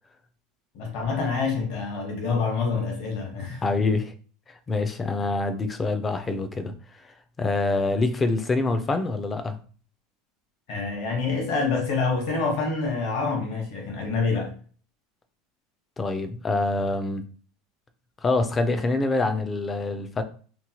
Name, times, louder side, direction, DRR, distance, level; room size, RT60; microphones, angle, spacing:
voice 1, 0.7-3.7 10.7-14.5, left 4 dB, 55° left, 1.0 m, -27 dB
voice 2, 3.6-4.1 4.5-9.6 16.0-17.2 18.2-20.2, left 3 dB, 15° left, 0.3 m, -26 dB
2.9 x 2.1 x 2.8 m
supercardioid pair, 155°, 0 cm